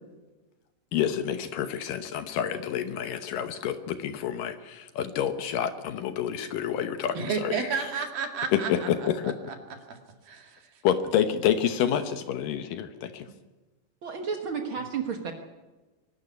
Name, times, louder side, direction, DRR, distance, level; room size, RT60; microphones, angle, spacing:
voice 1, 0.9-7.9 8.5-9.4 10.8-13.3, left 9 dB, 70° left, 9 dB, 2.4 m, -28 dB
voice 2, 7.2-8.9 9.2-9.3 9.9-10.0 10.3-10.7, right 6 dB, 65° right, 5 dB, 3.7 m, -31 dB
voice 3, 14.0-15.3, right 6 dB, 85° right, 4 dB, 1.1 m, -32 dB
22.5 x 13.0 x 9.7 m, 1.2 s
omnidirectional pair, 4.5 m